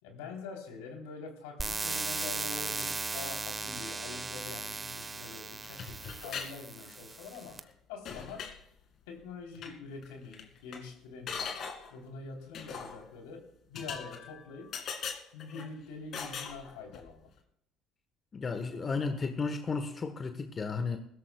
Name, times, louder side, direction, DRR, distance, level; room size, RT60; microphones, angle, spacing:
voice 1, 0.0-7.6 7.9-8.5 9.1-11.5 11.9-14.7 15.3-17.3, left 4 dB, 75° left, 3.6 m, -45 dB
sound 1, 1.6-7.6, right 3 dB, 25° right, 1.1 m, -37 dB
sound 2, 5.6-6.5 6.8-7.4 7.7-7.8 8.0-8.6 9.5-9.7 10.0-10.1 10.3-10.8 11.3-11.9 12.5-13.0 13.7-14.4 14.7-15.7 16.1-17.1, left 6 dB, 55° left, 2.3 m, -40 dB
voice 2, 18.3-21.0, left 4 dB, 35° left, 1.3 m, -33 dB
20.5 x 16.0 x 2.4 m
hypercardioid pair, 60°, 0 cm